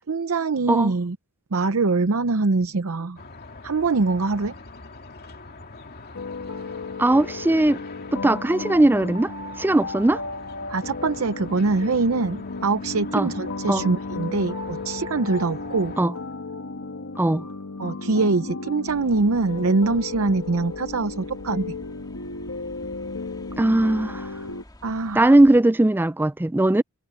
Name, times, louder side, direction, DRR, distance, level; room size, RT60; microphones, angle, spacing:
voice 1, 0.1-1.2 1.5-3.2 3.6-4.5 10.7-16.0 17.8-21.7 24.8-25.3, right 3 dB, 70° right, 0.7 m, -23 dB
sound 1, 3.2-16.0, left 3 dB, 45° left, 2.4 m, -43 dB
sound 2, 6.1-24.6, left 3 dB, 80° left, 1.6 m, -34 dB
voice 2, 7.0-7.8 8.1-9.3 9.6-10.2 13.1-13.3 13.7-13.9 16.0-16.1 17.2-17.5 23.6-24.3 25.1-26.8, right 1 dB, 10° right, 0.4 m, -19 dB
sound 3, 18.9-25.6, left 1 dB, 20° left, 2.5 m, -48 dB
head